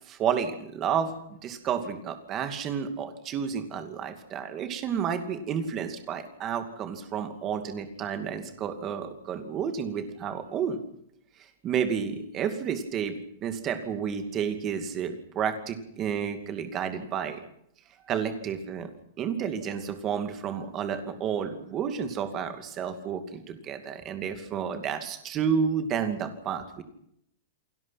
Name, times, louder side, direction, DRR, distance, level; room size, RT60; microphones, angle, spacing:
voice 1, 0.1-10.8 11.6-17.4 18.1-18.9 19.2-26.8, right 7 dB, 20° right, 8 dB, 2.5 m, -31 dB
29.0 x 20.5 x 6.0 m, 0.73 s
supercardioid pair, 175°, 0 cm